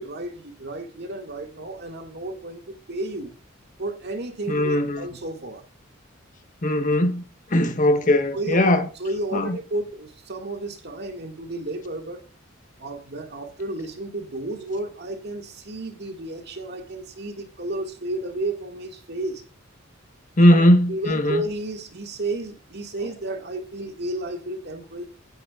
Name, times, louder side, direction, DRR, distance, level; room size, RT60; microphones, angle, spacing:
voice 1, 0.0-3.3 3.8-5.6 8.3-8.6 9.0-12.2 12.8-19.4 20.5-25.1, right 2 dB, 55° right, 2.0 m, -32 dB
voice 2, 4.5-5.0 6.6-7.2 7.5-8.9 9.3-9.6 20.4-21.4, left 1 dB, 40° left, 1.3 m, -19 dB
17.0 x 7.8 x 2.4 m
head